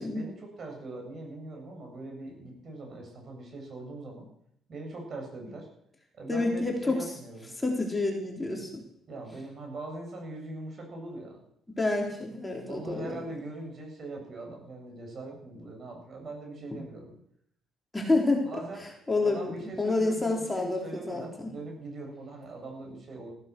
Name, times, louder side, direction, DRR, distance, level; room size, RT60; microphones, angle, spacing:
voice 1, 0.0-4.3 4.7-5.7 6.1-7.5 9.1-11.4 12.7-17.1 18.5-18.9 19.2-23.3, right 2 dB, 50° right, 1 dB, 7.9 m, -41 dB
voice 2, 6.3-7.1 7.6-8.8 11.7-13.2 17.9-18.5 19.1-19.5 19.8-21.5, left 2 dB, 15° left, 0 dB, 4.1 m, -28 dB
15.5 x 14.5 x 6.4 m, 0.70 s
cardioid pair, 85°, 0 cm